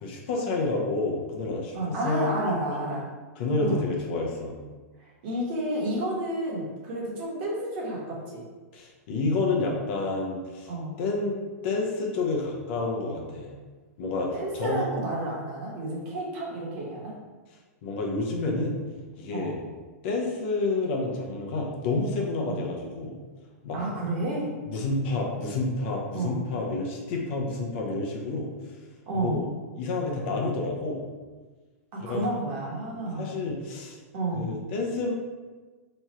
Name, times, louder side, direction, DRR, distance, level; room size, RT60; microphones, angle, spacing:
voice 1, 0.0-2.4 3.4-4.6 8.7-10.7 11.0-13.5 14.0-14.8 17.8-18.8 19.2-19.6 20.0-23.2 23.6-23.9 24.7-28.5 29.1-29.5 29.7-31.0 32.0-32.3 32.9-34.0 34.3-35.1, left 3 dB, 45° left, -1 dB, 0.7 m, -29 dB
voice 2, 1.7-3.1 3.6-3.8 5.2-8.4 10.7-10.9 14.3-17.1 19.3-19.6 22.4-22.6 23.7-24.5 26.1-26.4 29.1-29.4 31.9-33.3 34.1-34.5, right 1 dB, 45° right, -3 dB, 1.1 m, -30 dB
3.1 x 2.4 x 4.2 m, 1.3 s
hypercardioid pair, 155°, 8 cm